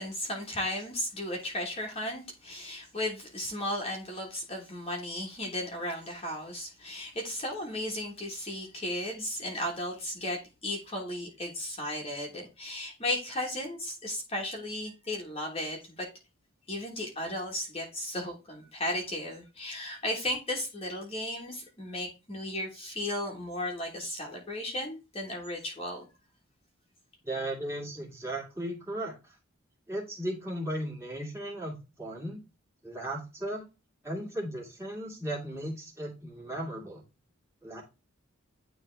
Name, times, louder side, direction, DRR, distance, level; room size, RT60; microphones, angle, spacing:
voice 1, 0.0-16.0 16.7-26.1, left 1 dB, 25° left, 1.4 m, -35 dB
voice 2, 27.2-29.4 29.9-32.4 32.8-33.7 34.0-37.0 37.6-37.8, right 1 dB, 10° right, 2.1 m, -36 dB
9.7 x 3.4 x 3.3 m
head